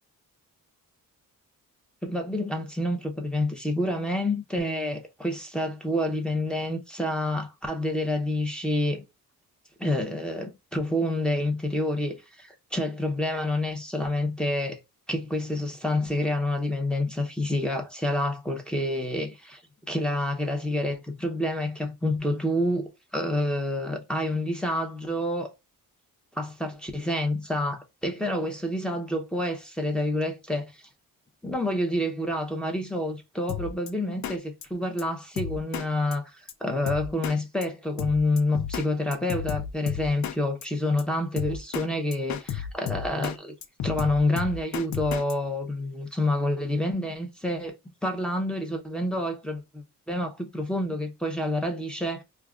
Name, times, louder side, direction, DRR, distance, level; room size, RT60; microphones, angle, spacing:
voice 1, 2.0-9.0 9.8-14.8 15.1-19.6 19.9-25.5 26.3-30.7 31.4-43.5 43.8-47.8 48.0-52.2, left 1 dB, 5° left, 0.6 m, -28 dB
Drum kit, 33.5-33.9 34.2-34.4 34.6-34.7 35.0-35.1 35.4-35.9 36.1-36.2 36.5-36.6 36.9-37.4 37.6-37.7 38.0-38.9 39.1-40.4 40.6-40.7 41.0-41.1 41.4-41.9 42.1-43.4 43.6-45.3, left 9 dB, 55° left, 0.4 m, -32 dB
4.7 x 2.3 x 2.4 m
wide cardioid pair, 115°, 35 cm